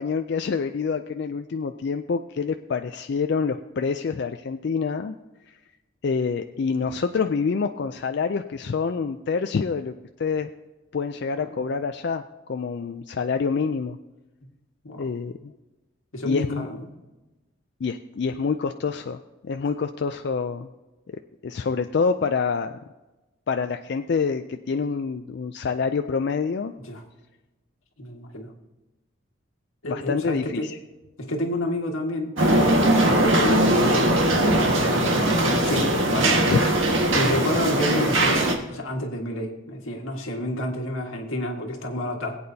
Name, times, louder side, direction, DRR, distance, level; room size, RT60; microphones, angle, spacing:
voice 1, 0.0-5.2 6.0-9.9 10.2-10.5 10.9-12.2 12.5-14.0 15.0-15.5 16.2-16.7 17.8-20.7 21.1-22.8 23.5-26.7 29.8-30.8 36.5-36.6, left 5 dB, 55° left, 7 dB, 0.4 m, -26 dB
voice 2, 16.1-16.9 26.8-27.0 28.0-28.5 29.8-30.7 31.2-36.5 37.1-42.4, left 1 dB, 85° left, 1 dB, 1.7 m, -30 dB
sound 1, 32.4-38.5, right 1 dB, 70° right, 1.6 m, -20 dB
21.0 x 8.6 x 2.8 m, 1.1 s
head